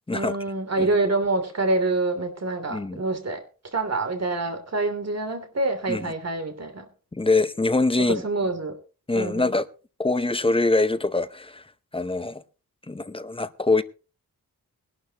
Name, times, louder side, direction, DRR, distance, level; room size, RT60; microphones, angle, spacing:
voice 1, 0.1-3.4 3.7-6.9 8.1-8.7 9.1-9.5, right 2 dB, 45° right, 2.9 m, -26 dB
voice 2, 2.7-3.0 5.9-6.1 7.1-8.2 9.1-9.7 10.0-11.6 11.9-12.4 12.9-13.8, left 3 dB, 15° left, 0.8 m, -24 dB
20.5 x 12.0 x 3.0 m
wide cardioid pair, 140°, 35 cm